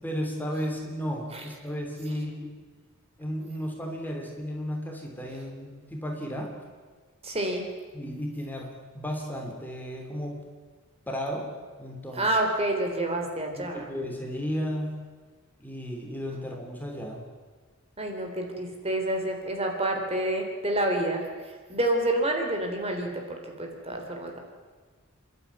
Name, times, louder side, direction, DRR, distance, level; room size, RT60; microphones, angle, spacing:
voice 1, 0.0-2.6 3.2-6.6 7.9-10.4 11.1-12.3 13.5-15.1 15.6-17.3, equal, 10° left, 1 dB, 3.0 m, -34 dB
voice 2, 7.2-7.6 12.2-13.9 18.0-21.2 21.7-24.4, right 1 dB, 30° right, 3 dB, 3.3 m, -28 dB
28.0 x 12.0 x 9.5 m, 1.4 s
head